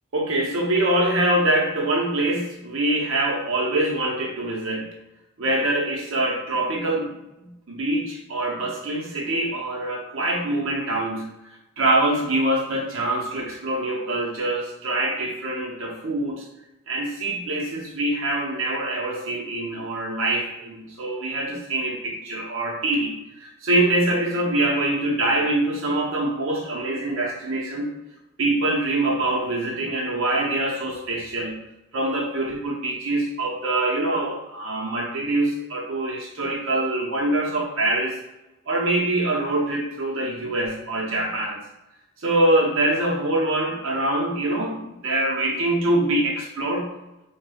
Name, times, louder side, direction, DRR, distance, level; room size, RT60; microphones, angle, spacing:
voice 1, 0.1-4.9 5.4-11.3 11.8-16.5 16.9-27.9 28.4-31.6 31.9-38.2 38.7-41.6 42.2-46.9, right 1 dB, 75° right, -2 dB, 0.7 m, -24 dB
4.9 x 2.2 x 2.2 m, 0.93 s
head